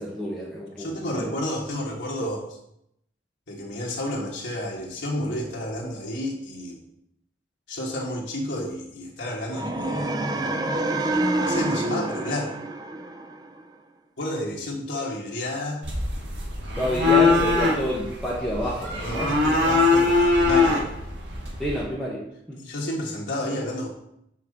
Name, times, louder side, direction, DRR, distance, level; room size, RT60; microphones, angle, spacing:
voice 1, 0.0-1.3 2.2-2.3 16.8-19.3 21.6-22.6, equal, ahead, -6 dB, 1.0 m, -29 dB
voice 2, 0.8-2.4 3.5-6.8 7.7-10.1 11.4-12.6 14.2-15.8 19.0-20.9 22.6-23.9, left 1 dB, 85° left, -3 dB, 1.5 m, -31 dB
sound 1, 9.5-13.6, right 2 dB, 20° right, 0.4 m, -27 dB
sound 2, 15.8-21.8, left 3 dB, 75° right, 1.7 m, -22 dB
5.7 x 4.6 x 6.5 m, 0.76 s
head